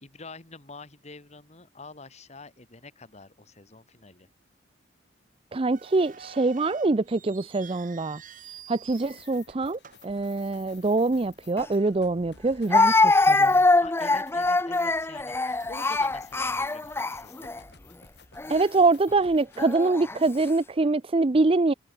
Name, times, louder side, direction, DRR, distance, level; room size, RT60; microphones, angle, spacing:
voice 1, 0.0-4.3 13.8-17.7, left 3 dB, 40° left, 2.1 m, -46 dB
voice 2, 5.5-8.2 8.7-13.6 18.5-21.7, right 3 dB, 30° right, 0.5 m, -24 dB
sound 1, 5.7-11.0 11.3-11.4 12.1-12.3 12.8-12.9 13.5-14.1 14.4-16.9, right 7 dB, 45° right, 3.4 m, -49 dB
sound 2, 8.8-19.8, left 5 dB, 65° left, 4.1 m, -54 dB
Speech, 11.6-11.7 12.7-17.6 18.4-18.6 19.6-20.2, left 2 dB, 15° left, 0.5 m, -23 dB
head